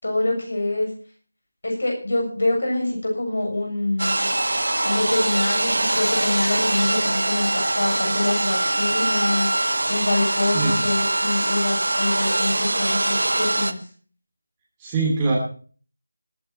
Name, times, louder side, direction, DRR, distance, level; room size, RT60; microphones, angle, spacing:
voice 1, 0.0-0.9 1.6-4.3 4.8-7.5 7.7-9.5 9.9-13.9, left 2 dB, 55° left, 1 dB, 7.1 m, -25 dB
sound 1, 4.0-13.7, right 2 dB, 65° right, 1.0 m, -23 dB
voice 2, 10.4-10.8 14.8-15.4, right 3 dB, 10° right, -6 dB, 2.7 m, -23 dB
20.0 x 9.5 x 4.3 m, 0.41 s
figure-of-eight pair, 165°, 0 cm